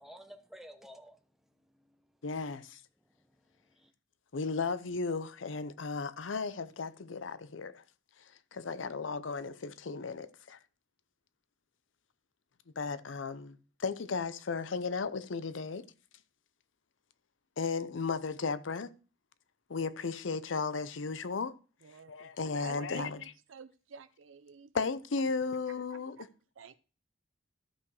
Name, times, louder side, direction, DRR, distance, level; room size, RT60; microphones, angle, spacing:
voice 1, 0.0-2.2 3.0-3.9, equal, ahead, 0.9 m, -54 dB
voice 2, 2.2-2.8 4.3-7.8 8.5-10.6 12.8-15.9 17.6-18.9 19.7-21.5 22.1-23.2 24.7-26.2, left 4 dB, 80° left, 0.6 m, -35 dB
voice 3, 21.8-24.7 25.7-26.3 26.6-26.8, right 6 dB, 85° right, 0.5 m, -50 dB
12.5 x 5.7 x 4.8 m
head